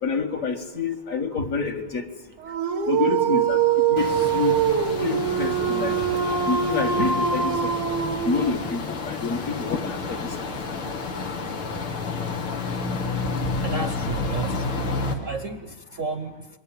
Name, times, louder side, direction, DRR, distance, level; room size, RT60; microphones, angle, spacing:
voice 1, 0.0-2.1 2.9-3.6 3.9-4.6 5.0-7.7 8.3-10.8, left 5 dB, 40° left, 4 dB, 1.8 m, -28 dB
Dog, 2.4-8.8, right 7 dB, 85° right, 2.0 m, -23 dB
sound 1, 4.0-15.1, left 4 dB, 75° left, 3.1 m, -30 dB
voice 2, 13.6-14.8 15.1-16.6, right 4 dB, 45° right, 10 dB, 1.1 m, -32 dB
28.0 x 23.0 x 9.1 m, 1.1 s
omnidirectional pair, 2.4 m